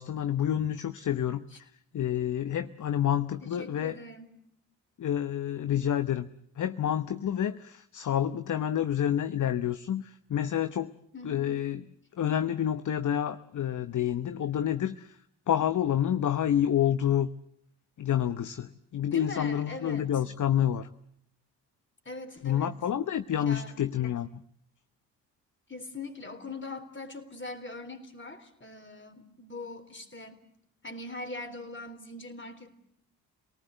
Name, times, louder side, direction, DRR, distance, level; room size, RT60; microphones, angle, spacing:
voice 1, 0.0-4.0 5.0-6.3 6.6-10.9 11.2-11.8 12.2-15.2 15.5-17.3 18.0-20.9 22.4-24.3, left 10 dB, 40° left, 12 dB, 0.9 m, -28 dB
voice 2, 3.4-4.3 11.1-11.5 19.0-20.1 22.1-22.8 23.4-23.8 25.7-30.4 30.8-32.7, left 2 dB, 25° left, 9 dB, 3.9 m, -42 dB
28.5 x 19.0 x 7.9 m, 0.71 s
hypercardioid pair, 45°, 45 cm